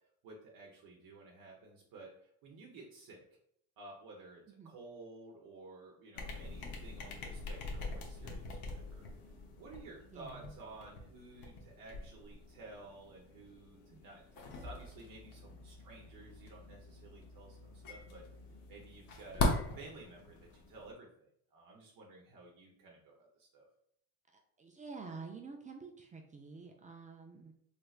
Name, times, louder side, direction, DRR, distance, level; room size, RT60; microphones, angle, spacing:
voice 1, 0.2-3.2 3.8-9.1 9.6-18.2 18.7-23.7, right 2 dB, 55° right, -2 dB, 0.9 m, -53 dB
sound 1, 6.1-20.9, left 2 dB, 55° left, 0.9 m, -42 dB
voice 2, 10.1-10.6 13.9-14.0 24.6-27.5, right 4 dB, 20° right, 2 dB, 0.4 m, -49 dB
3.4 x 3.0 x 2.4 m, 0.70 s
supercardioid pair, 95°, 41 cm